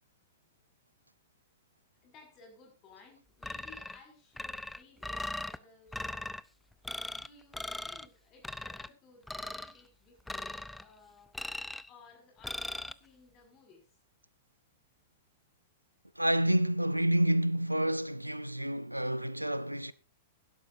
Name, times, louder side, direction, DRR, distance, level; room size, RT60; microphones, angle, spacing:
voice 1, 2.0-6.3 6.9-11.3 11.9-13.9, left 4 dB, 30° left, 6.0 m, -58 dB
sound 1, 3.4-4.0 4.4-5.6 5.9-6.4 6.8-7.3 7.5-8.1 8.4-8.9 9.3-9.7 10.3-10.8 11.3-11.9 12.4-12.9, left 1 dB, 5° left, 0.5 m, -39 dB
voice 2, 16.2-19.9, right 1 dB, 90° right, 0.6 m, -29 dB
16.5 x 12.0 x 2.7 m
figure-of-eight pair, 100°, 0 cm